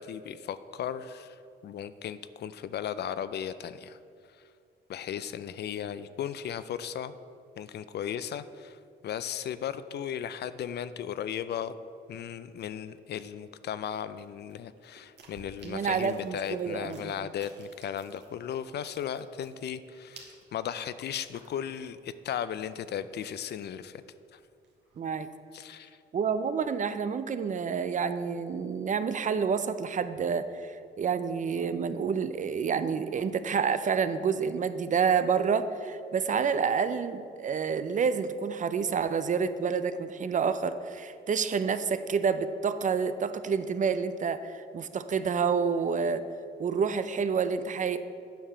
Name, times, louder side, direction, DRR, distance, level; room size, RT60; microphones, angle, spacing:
voice 1, 0.0-1.3 1.6-4.0 4.9-7.1 7.6-8.8 9.0-11.7 12.1-24.0 24.3-24.4 25.5-26.0, left 9 dB, 55° left, 14 dB, 0.4 m, -36 dB
sound 1, 14.2-18.5 18.8-21.9 22.1-22.2 22.6-23.7 24.2-25.0, right 4 dB, 60° right, 1.6 m, -55 dB
voice 2, 15.6-17.1 25.0-25.3 26.1-46.2 46.6-48.0, right 6 dB, 40° right, 12 dB, 0.5 m, -28 dB
9.0 x 4.7 x 6.7 m, 2.3 s
cardioid pair, 90°, 20 cm